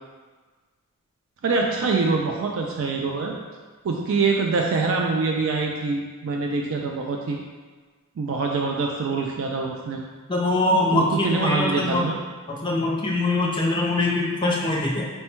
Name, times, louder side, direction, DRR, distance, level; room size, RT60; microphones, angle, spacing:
voice 1, 1.4-3.3 3.8-7.4 8.2-10.0 10.9-12.2, right 4 dB, 60° right, 0 dB, 0.3 m, -24 dB
voice 2, 10.3-12.1 12.5-15.0, left 2 dB, 20° left, -2 dB, 0.5 m, -23 dB
4.3 x 2.2 x 4.3 m, 1.4 s
head